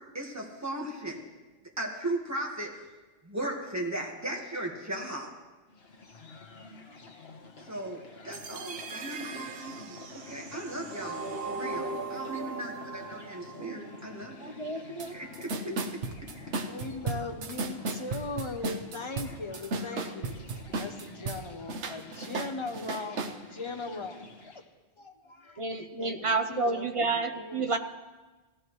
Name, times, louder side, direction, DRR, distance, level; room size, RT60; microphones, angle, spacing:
voice 1, 0.1-1.2 1.8-2.9 3.2-5.3 7.6-14.5 15.1-15.5, right 1 dB, 15° right, 1.6 m, -37 dB
sound 1, 5.7-24.7, left 3 dB, 65° left, 1.4 m, -49 dB
sound 2, 8.3-14.3, right 4 dB, 60° right, 0.9 m, -39 dB
voice 2, 11.5-12.2 16.3-24.6 25.0-27.7, left 3 dB, 30° left, 0.7 m, -40 dB
voice 3, 14.4-15.2 15.6-15.8 25.6-27.8, right 3 dB, 35° right, 0.7 m, -30 dB
sound 3, 15.0-15.1 15.3-21.4 21.7-23.4, right 3 dB, 85° right, 1.1 m, -34 dB
17.0 x 14.0 x 3.2 m
omnidirectional pair, 1.2 m